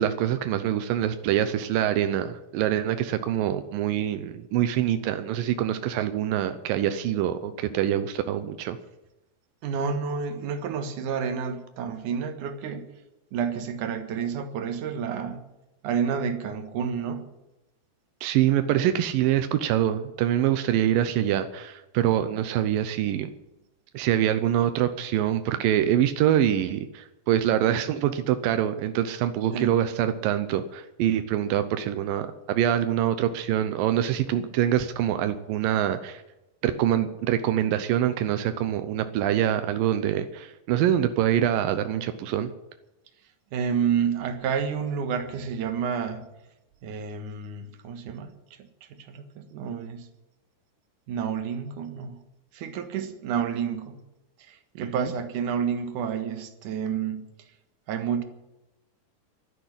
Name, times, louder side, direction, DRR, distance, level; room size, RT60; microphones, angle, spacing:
voice 1, 0.0-8.8 18.2-23.3 23.9-36.2 36.6-42.5 54.8-55.1, right 11 dB, 85° right, 2.0 m, -25 dB
voice 2, 9.6-12.9 13.3-15.4 15.8-17.3 29.5-29.8 43.5-46.3 46.8-48.3 49.0-50.1 51.1-52.2 52.5-54.0 54.4-57.3 57.9-58.2, right 7 dB, 60° right, 2.4 m, -29 dB
12.0 x 10.5 x 9.9 m
omnidirectional pair, 5.0 m